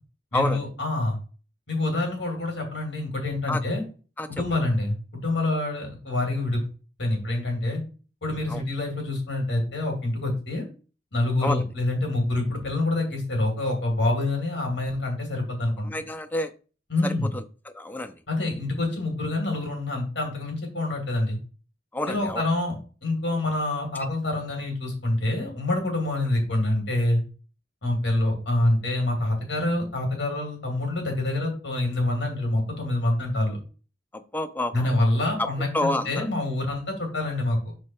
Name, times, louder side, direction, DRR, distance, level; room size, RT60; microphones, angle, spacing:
voice 1, 0.3-1.2 1.7-3.8 4.3-6.6 7.0-7.8 8.2-10.6 11.1-15.9 16.9-17.3 18.3-21.4 22.1-27.2 27.8-33.6 34.7-37.7, left 2 dB, 65° left, 2 dB, 2.7 m, -26 dB
voice 2, 15.8-16.5 17.0-18.1 21.9-22.4 34.1-34.9 35.4-35.5 35.7-36.3, left 1 dB, 10° left, 8 dB, 0.4 m, -28 dB
5.3 x 4.4 x 4.5 m, 0.36 s
head